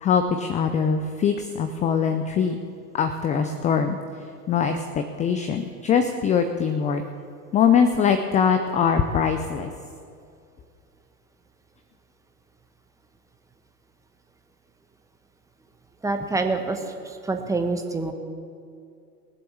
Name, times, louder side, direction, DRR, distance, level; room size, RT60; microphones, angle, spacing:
voice 1, 0.0-2.6 2.9-4.0 4.5-7.0 7.5-9.7, left 7 dB, 15° left, 8 dB, 0.5 m, -22 dB
voice 2, 16.0-16.8 17.2-18.1, right 3 dB, 5° right, 5 dB, 1.2 m, -25 dB
19.0 x 7.7 x 6.9 m, 2.4 s
figure-of-eight pair, 95°, 49 cm